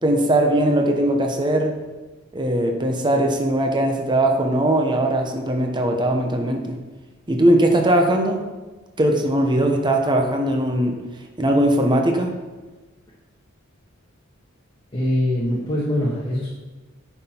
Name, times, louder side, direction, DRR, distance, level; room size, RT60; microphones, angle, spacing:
voice 1, 0.0-1.7 2.3-6.8 7.3-8.4 9.0-11.0 11.4-12.3, right 1 dB, 20° right, 3 dB, 0.9 m, -20 dB
voice 2, 14.9-16.5, left 1 dB, 25° left, -6 dB, 1.4 m, -23 dB
9.6 x 5.9 x 4.4 m, 1.2 s
head